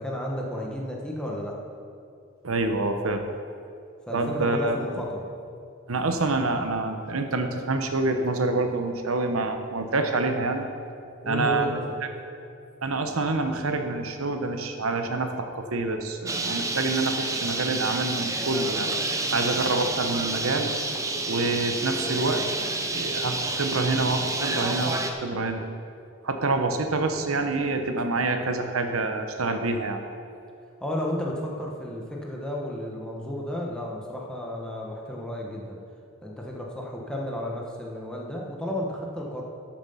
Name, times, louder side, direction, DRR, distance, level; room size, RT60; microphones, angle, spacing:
voice 1, 0.0-1.6 4.1-5.2 11.2-11.9 30.8-35.8 36.2-39.4, left 1 dB, 5° left, -2 dB, 1.2 m, -32 dB
voice 2, 2.4-3.2 4.1-5.0 5.9-10.7 11.3-11.8 12.8-18.9 19.3-20.7 21.3-22.5 22.9-25.6 26.2-30.0, right 3 dB, 75° right, 6 dB, 1.0 m, -27 dB
Bird, 16.3-25.1, right 2 dB, 15° right, 0.7 m, -29 dB
13.5 x 7.4 x 5.6 m, 2.5 s
head